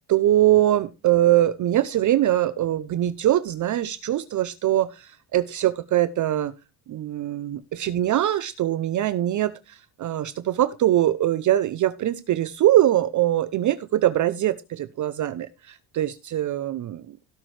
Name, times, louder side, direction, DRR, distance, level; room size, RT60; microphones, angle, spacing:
voice 1, 0.1-6.5 6.9-17.2, right 13 dB, 45° right, 0.6 m, -22 dB
17.0 x 6.0 x 3.2 m
cardioid pair, 135°, 43 cm